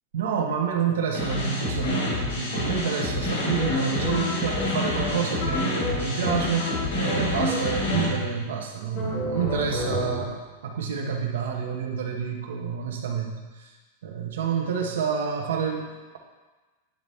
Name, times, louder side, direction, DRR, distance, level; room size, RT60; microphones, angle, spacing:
voice 1, 0.1-10.3 10.6-13.7 14.0-16.2, right 6 dB, 85° right, 2 dB, 1.1 m, -28 dB
sound 1, 1.1-8.1, left 2 dB, 75° left, 2.1 m, -28 dB
sound 2, 3.5-8.5 8.9-10.5, left 1 dB, 30° left, 1.9 m, -32 dB
9.3 x 4.1 x 3.5 m, 1.2 s
supercardioid pair, 175°, 0 cm